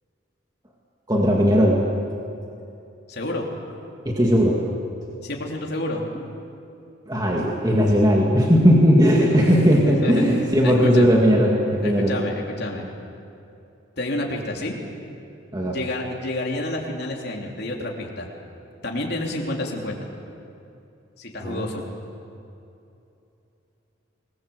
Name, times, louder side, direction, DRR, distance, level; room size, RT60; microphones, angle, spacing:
voice 1, 1.1-1.8 4.0-4.6 7.1-12.1 15.5-15.8 21.4-21.7, equal, 20° right, -2 dB, 2.2 m, -18 dB
voice 2, 3.1-3.5 5.2-6.1 9.4-9.5 9.8-11.1 11.8-12.9 14.0-14.7 15.6-18.3 18.8-20.0 21.2-21.8, left 1 dB, 55° left, 0 dB, 3.4 m, -29 dB
26.5 x 20.5 x 8.0 m, 2.8 s
head